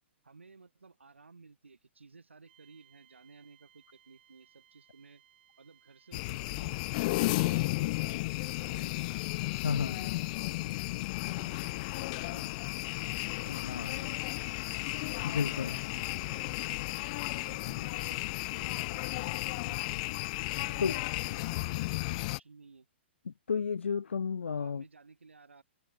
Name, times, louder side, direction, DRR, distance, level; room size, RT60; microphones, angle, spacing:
voice 1, 0.2-5.2 5.6-9.2 9.7-12.5 13.0-15.2 15.7-20.0 20.6-22.9 24.6-25.6, right 4 dB, 85° right, 2.5 m, -56 dB
sound 1, 2.5-10.2, right 11 dB, 60° right, 4.0 m, -66 dB
sound 2, 6.1-22.4, left 22 dB, 40° left, 0.3 m, -34 dB
voice 2, 9.6-10.0 13.5-13.9 15.2-15.8 20.8-21.0 23.3-24.8, left 6 dB, 80° left, 0.6 m, -32 dB
figure-of-eight pair, 120°, 6 cm